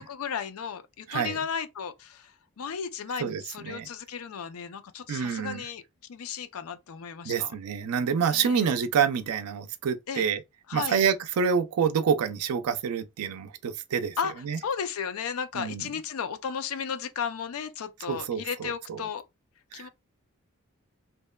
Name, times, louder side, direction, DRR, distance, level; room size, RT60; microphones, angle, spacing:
voice 1, 0.0-5.8 6.1-7.5 8.3-8.7 10.1-10.3 10.7-11.0 14.2-14.3 14.6-19.2 19.7-19.9, left 7 dB, 75° left, 0.4 m, -34 dB
voice 2, 1.1-1.4 3.2-3.9 5.1-5.6 7.2-10.4 10.7-14.2 14.4-14.6 15.5-15.8 18.1-19.0 19.7-19.9, right 7 dB, 90° right, 0.4 m, -27 dB
2.8 x 2.1 x 2.2 m
head